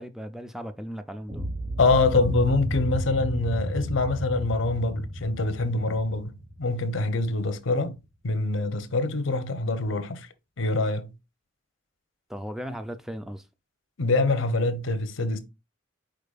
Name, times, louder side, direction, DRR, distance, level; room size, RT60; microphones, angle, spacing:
voice 1, 0.0-1.5 12.3-13.5, equal, ahead, 0.4 m, -37 dB
sound 1, 1.3-7.4, equal, 30° right, 1.2 m, -33 dB
voice 2, 1.8-8.0 8.2-10.3 10.6-11.1 14.0-15.4, left 3 dB, 90° left, 0.8 m, -25 dB
5.0 x 4.5 x 2.3 m
head